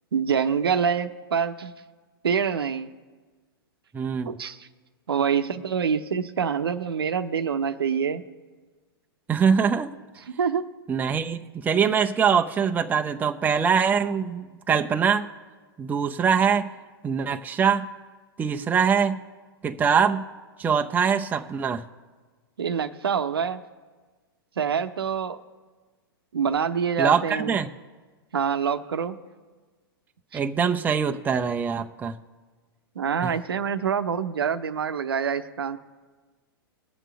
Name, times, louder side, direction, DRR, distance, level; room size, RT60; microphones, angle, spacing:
voice 1, 0.1-1.7 2.2-2.9 4.2-4.6 5.1-8.2 10.3-10.6 22.6-23.6 24.6-25.4 26.3-27.6 28.3-29.2 33.0-35.8, right 7 dB, 75° right, 9 dB, 0.8 m, -26 dB
voice 2, 3.9-4.3 9.3-9.9 10.9-15.3 15.8-16.7 17.0-17.9 18.4-19.2 19.6-20.2 20.6-21.8 27.0-27.7 30.3-32.2 33.2-33.3, right 6 dB, 15° right, 5 dB, 0.6 m, -23 dB
21.0 x 7.5 x 3.4 m, 1.4 s
hypercardioid pair, 110°, 13 cm